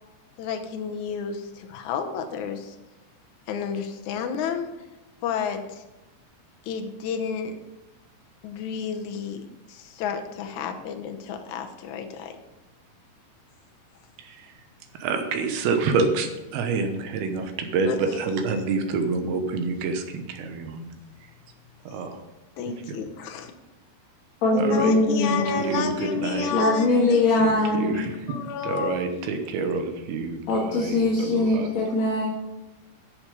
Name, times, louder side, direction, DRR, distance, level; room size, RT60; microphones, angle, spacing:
voice 1, 0.4-2.8 3.5-4.7 5.2-5.8 6.7-7.5 8.4-9.4 9.7-12.4 17.9-18.2 22.6-23.5 24.5-27.2 28.3-29.1, left 6 dB, 75° left, 5 dB, 1.7 m, -31 dB
voice 2, 14.2-14.6 14.9-20.9 21.8-22.2 22.9-23.0 24.6-24.9 25.3-26.5 27.7-28.1 28.6-31.7, right 4 dB, 75° right, 6 dB, 2.9 m, -28 dB
voice 3, 24.4-25.9 26.5-28.0 30.5-32.3, left 2 dB, 50° left, -4 dB, 2.5 m, -22 dB
11.5 x 7.0 x 5.4 m, 1.0 s
omnidirectional pair, 4.7 m